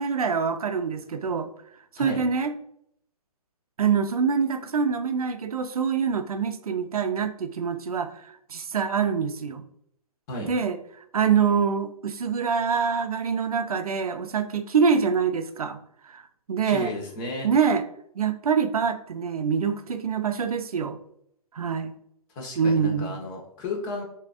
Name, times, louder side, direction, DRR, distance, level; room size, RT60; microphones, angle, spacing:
voice 1, 0.0-1.5 2.0-2.5 3.8-9.6 10.4-10.8 11.1-15.8 16.1-16.2 16.5-16.9 17.4-17.8 18.2-21.0 21.5-21.9 22.6-23.2, right 6 dB, 70° right, 8 dB, 0.7 m, -25 dB
voice 2, 16.6-17.5 22.3-24.0, left 2 dB, 35° left, 0 dB, 1.5 m, -33 dB
6.6 x 3.0 x 2.5 m, 0.70 s
figure-of-eight pair, 125°, 19 cm